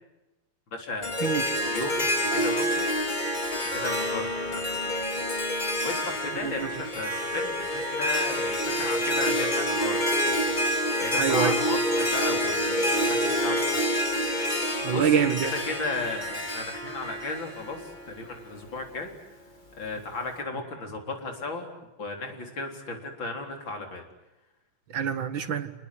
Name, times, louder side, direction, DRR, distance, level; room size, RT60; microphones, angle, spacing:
voice 1, 0.7-3.0 3.7-5.2 5.8-10.5 11.0-13.8 14.9-15.1 15.5-19.1 19.8-21.7 22.0-24.0, left 3 dB, 65° left, 4.7 m, -35 dB
Harp, 1.0-18.3, equal, 20° left, 2.8 m, -27 dB
voice 2, 11.2-11.6 14.8-15.5 24.9-25.7, right 7 dB, 65° right, 2.3 m, -25 dB
29.0 x 20.0 x 9.9 m
omnidirectional pair, 2.3 m